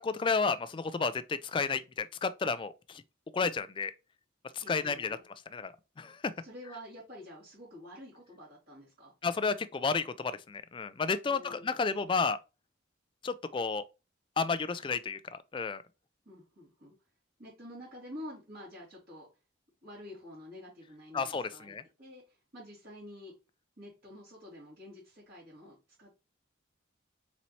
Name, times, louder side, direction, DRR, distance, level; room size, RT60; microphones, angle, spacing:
voice 1, 0.0-3.0 3.3-3.9 4.5-5.2 5.5-6.3 9.2-12.4 13.2-13.8 14.4-15.8 21.1-21.8, left 4 dB, 25° left, 0.3 m, -32 dB
voice 2, 4.5-5.2 6.4-9.1 11.2-11.8 16.3-16.9 17.4-19.3 19.8-23.3 23.8-26.2, left 1 dB, 55° right, 2.3 m, -49 dB
4.1 x 4.1 x 3.1 m
head